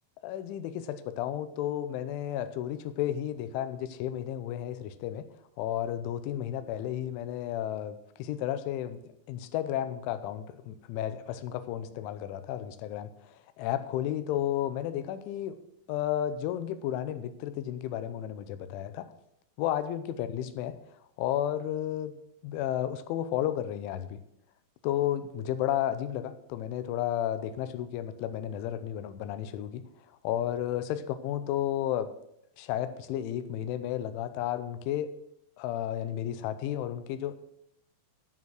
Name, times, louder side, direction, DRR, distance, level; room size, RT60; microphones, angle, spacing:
voice 1, 0.2-5.3 5.6-9.0 9.3-15.6 15.9-19.1 19.6-20.8 21.2-22.2 22.4-24.2 24.8-29.9 30.2-32.1 32.6-35.1 35.6-37.5, left 11 dB, 80° left, 11 dB, 3.0 m, -32 dB
12.0 x 6.8 x 6.3 m, 0.78 s
omnidirectional pair, 5.8 m